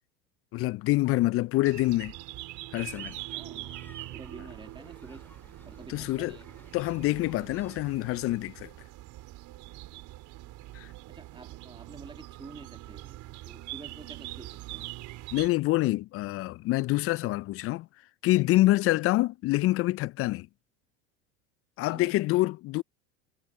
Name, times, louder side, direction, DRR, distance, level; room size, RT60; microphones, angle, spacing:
voice 1, 0.5-2.1 2.7-3.2 5.9-6.4 6.7-8.7 10.7-10.9 15.3-17.9 18.2-20.5 21.8-22.8, left 18 dB, 40° left, 0.4 m, -26 dB
sound 1, 1.6-15.5, right 17 dB, 55° right, 4.3 m, -43 dB
sound 2, 2.7-7.8, left 1 dB, 5° left, 2.7 m, -55 dB
voice 2, 3.3-3.7 4.1-5.2 5.6-6.5 11.1-14.9 17.2-17.3 18.8-18.9 21.9-22.2, right 3 dB, 15° right, 2.3 m, -48 dB
hypercardioid pair, 90°, 36 cm